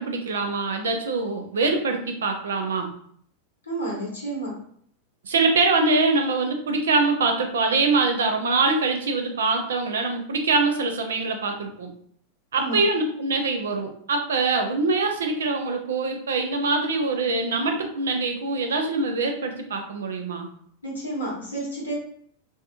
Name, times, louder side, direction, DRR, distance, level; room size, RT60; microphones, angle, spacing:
voice 1, 0.0-2.9 5.2-11.9 12.5-20.5, right 3 dB, 65° right, 4 dB, 0.4 m, -24 dB
voice 2, 3.7-4.5 12.5-12.8 20.8-21.9, right 2 dB, 75° left, -4 dB, 1.0 m, -30 dB
2.6 x 2.5 x 2.4 m, 0.63 s
figure-of-eight pair, 90°, 0 cm